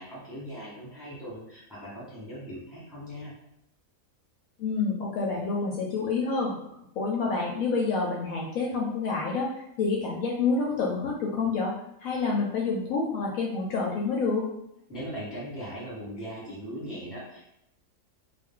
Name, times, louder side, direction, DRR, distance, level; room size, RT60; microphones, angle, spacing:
voice 1, 0.0-3.3 14.9-17.5, equal, ahead, -8 dB, 1.0 m, -39 dB
voice 2, 4.6-6.6 6.9-9.5 9.8-11.7 12.0-14.5, left 4 dB, 70° left, -2 dB, 0.9 m, -28 dB
2.5 x 2.2 x 3.6 m, 0.78 s
omnidirectional pair, 1.6 m